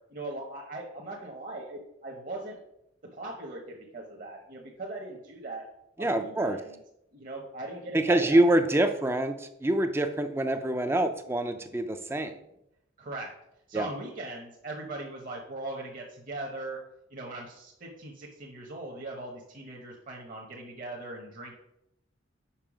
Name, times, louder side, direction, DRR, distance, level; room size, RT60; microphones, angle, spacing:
voice 1, 0.1-2.6 3.1-5.7 6.0-6.8 7.1-8.5 13.0-13.3 13.7-16.8 17.1-21.6, right 2 dB, 45° right, -1 dB, 0.9 m, -39 dB
voice 2, 6.0-6.6 7.9-12.4 13.7-13.9, right 1 dB, 10° right, 7 dB, 0.4 m, -25 dB
5.6 x 5.3 x 5.0 m, 0.83 s
head